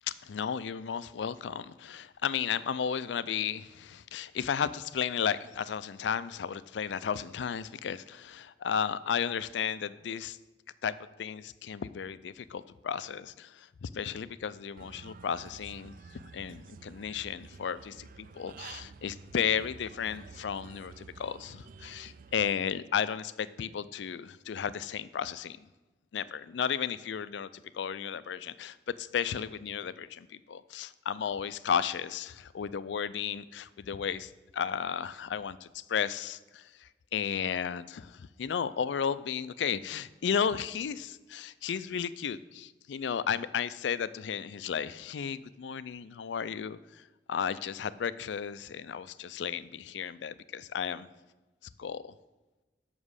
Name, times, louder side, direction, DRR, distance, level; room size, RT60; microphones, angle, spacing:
voice 1, 0.1-10.4 10.8-25.6 26.1-47.0 47.3-51.1 51.8-52.1, left 7 dB, 85° left, 16 dB, 0.4 m, -34 dB
Human voice / Bird, 14.8-22.4, right 5 dB, 50° right, 0.3 m, -50 dB
7.4 x 6.0 x 6.4 m, 1.1 s
head